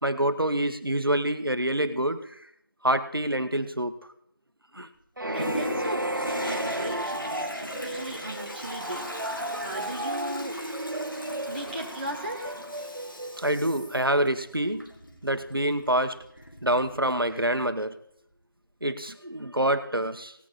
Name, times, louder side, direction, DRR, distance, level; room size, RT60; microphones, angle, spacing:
voice 1, 0.0-2.3 2.8-3.9 4.7-4.9 9.1-9.2 9.5-9.6 13.4-14.9 15.2-16.2 16.6-18.0 18.8-20.3, right 1 dB, 90° right, 10 dB, 1.3 m, -26 dB
voice 2, 5.2-9.1 9.6-10.5 11.5-12.6, right 1 dB, 25° right, -2 dB, 1.6 m, -37 dB
sound 1, 5.2-13.9, right 1 dB, 65° right, 1.5 m, -33 dB
Toilet flush, 5.3-17.8 18.3-18.4, equal, 70° left, 2.5 m, -40 dB
18.0 x 8.7 x 4.2 m, 0.72 s
figure-of-eight pair, 165°, 12 cm